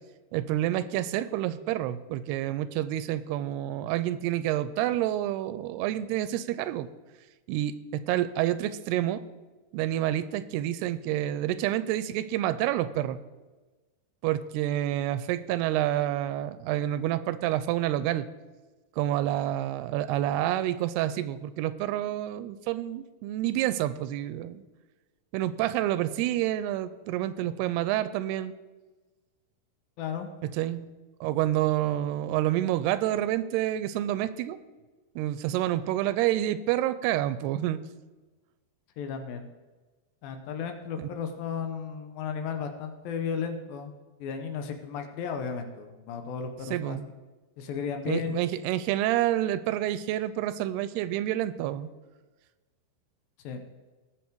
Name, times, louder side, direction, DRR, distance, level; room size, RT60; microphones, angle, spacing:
voice 1, 0.3-6.9 7.5-9.2 9.7-13.2 14.2-18.3 19.0-24.6 25.3-28.5 30.5-30.8 31.2-34.6 35.2-37.8 41.0-41.1 46.7-47.1 48.1-51.9, right 13 dB, 90° right, 14 dB, 2.6 m, -28 dB
voice 2, 30.0-30.3 39.0-39.5 40.2-43.9 44.2-47.0 47.6-48.4 53.4-53.6, left 6 dB, 75° left, 7 dB, 2.5 m, -34 dB
19.0 x 6.9 x 4.6 m, 1.2 s
omnidirectional pair, 4.6 m